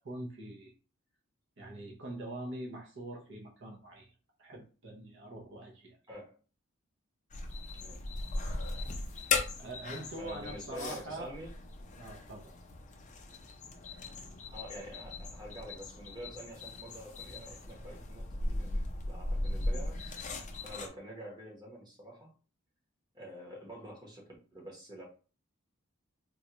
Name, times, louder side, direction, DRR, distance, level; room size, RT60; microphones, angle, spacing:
voice 1, 0.0-0.7 1.6-4.1 4.4-6.0 9.6-11.3 12.0-12.5, right 1 dB, 55° right, -1 dB, 0.7 m, -43 dB
voice 2, 6.1-6.4 7.7-8.0 10.2-11.5 14.5-20.0 20.6-22.3 23.1-25.0, right 1 dB, 20° right, -1 dB, 0.9 m, -47 dB
sound 1, 7.3-20.9, left 2 dB, 35° left, 0.5 m, -38 dB
3.8 x 2.2 x 2.9 m, 0.37 s
head